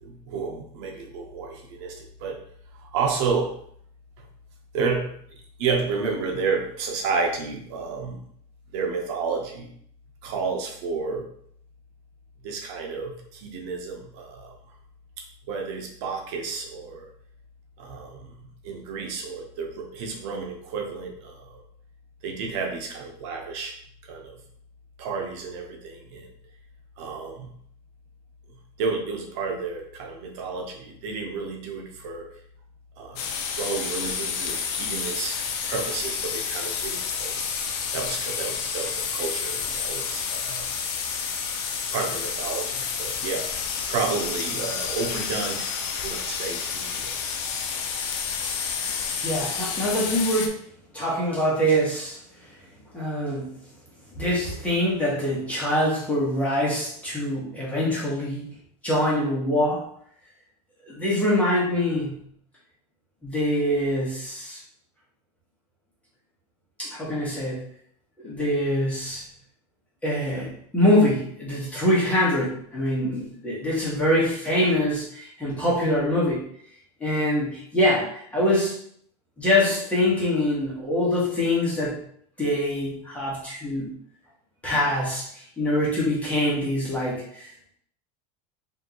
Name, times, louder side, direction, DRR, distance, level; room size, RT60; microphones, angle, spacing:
voice 1, 0.0-2.4 2.7-3.5 4.2-4.3 4.7-8.2 8.7-9.7 10.2-11.3 12.4-14.6 15.5-17.1 17.8-21.6 22.2-23.7 24.0-24.4 25.0-26.3 27.0-27.5 28.8-32.4 33.0-33.2 33.5-35.4 35.7-37.6 37.9-40.7 41.9-43.5 43.9-47.1 48.4-48.6, right 4 dB, 70° right, 1 dB, 0.9 m, -31 dB
sound 1, 33.2-50.5, left 6 dB, 60° left, 0.7 m, -30 dB
voice 2, 49.2-50.6 50.9-52.2 52.9-53.6 54.1-58.5 58.8-59.9 60.8-62.3 63.2-64.6 66.8-67.6 68.2-69.3 70.0-76.4 77.0-78.8 79.4-82.0 82.4-84.0 84.6-87.7, left 1 dB, 10° left, -6 dB, 1.5 m, -24 dB
4.9 x 2.8 x 3.0 m, 0.63 s
supercardioid pair, 155°, 16 cm